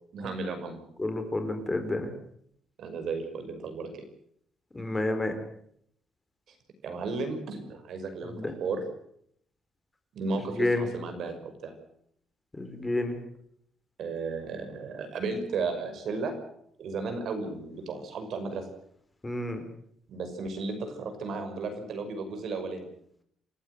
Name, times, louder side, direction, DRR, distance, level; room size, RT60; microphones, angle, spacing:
voice 1, 0.1-0.8 2.8-4.0 6.8-8.8 10.1-11.7 14.0-16.3 16.8-18.6 20.1-22.9, right 4 dB, 60° right, 7 dB, 5.9 m, -34 dB
voice 2, 1.0-2.1 4.7-5.3 8.3-8.5 10.6-10.8 12.6-13.1 19.2-19.6, left 2 dB, 15° left, 7 dB, 4.3 m, -29 dB
28.5 x 15.5 x 8.0 m, 0.68 s
cardioid pair, 130°, 0 cm